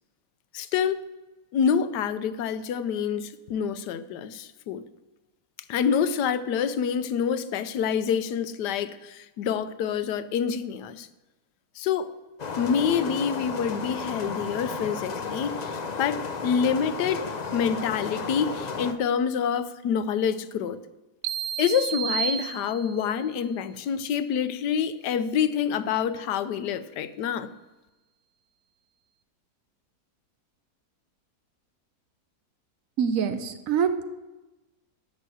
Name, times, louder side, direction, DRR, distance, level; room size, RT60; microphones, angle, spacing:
voice 1, 0.5-1.0 1.5-4.8 5.7-11.1 11.8-12.1 12.6-20.8 21.6-27.5, left 7 dB, 90° left, 13 dB, 1.3 m, -27 dB
sound 1, 12.4-18.9, left 4 dB, 50° left, 0.5 m, -33 dB
sound 2, 21.2-23.2, right 8 dB, 90° right, 1.2 m, -31 dB
voice 2, 33.0-34.0, right 7 dB, 60° right, 10 dB, 1.0 m, -25 dB
11.0 x 6.2 x 7.7 m, 1.1 s
omnidirectional pair, 1.7 m